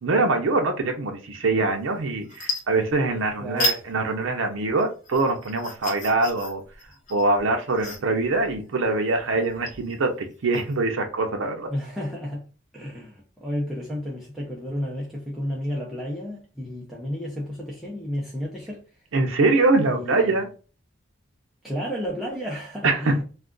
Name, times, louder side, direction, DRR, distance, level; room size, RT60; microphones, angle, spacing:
voice 1, 0.0-6.6 7.1-11.7 19.1-20.5 22.8-23.2, right 3 dB, 80° right, 0.5 m, -23 dB
sound 1, 1.7-1.9 2.2-3.2 3.6-3.8 4.2-10.7, left 1 dB, 40° left, 0.7 m, -33 dB
voice 2, 3.4-3.8 11.7-12.4 12.7-18.8 19.8-20.4 21.6-23.2, equal, ahead, 0.5 m, -32 dB
2.4 x 2.2 x 3.6 m
head